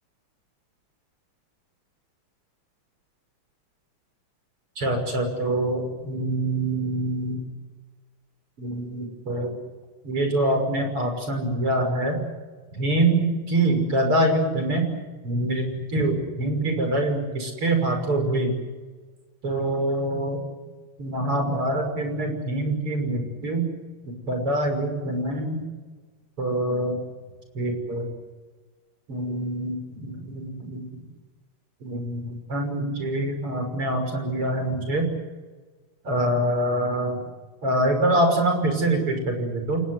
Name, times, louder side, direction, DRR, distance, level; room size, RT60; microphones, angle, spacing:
voice 1, 4.8-7.4 8.6-9.5 10.0-12.2 12.8-14.8 15.2-15.6 15.9-18.5 19.4-20.4 21.0-23.7 24.0-25.6 26.4-27.0 27.6-28.1 29.1-30.8 31.8-35.1 36.0-37.2 37.6-39.8, right 1 dB, 80° right, 5 dB, 7.1 m, -25 dB
29.0 x 19.0 x 8.1 m, 1.4 s
omnidirectional pair, 2.4 m